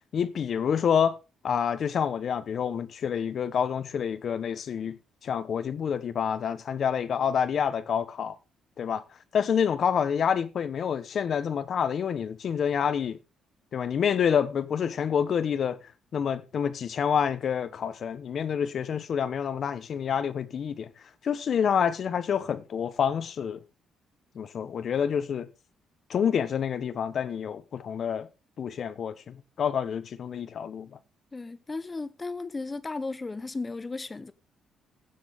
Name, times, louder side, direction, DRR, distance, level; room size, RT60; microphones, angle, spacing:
voice 1, 0.1-1.2 1.4-8.4 8.8-9.0 9.3-13.2 13.7-15.8 16.1-20.9 21.2-23.6 24.3-25.5 26.1-28.3 28.6-31.0, left 7 dB, 55° left, 1.0 m, -28 dB
voice 2, 31.3-34.3, left 3 dB, 25° left, 1.0 m, -35 dB
16.5 x 7.4 x 3.6 m
cardioid pair, 90°, 0 cm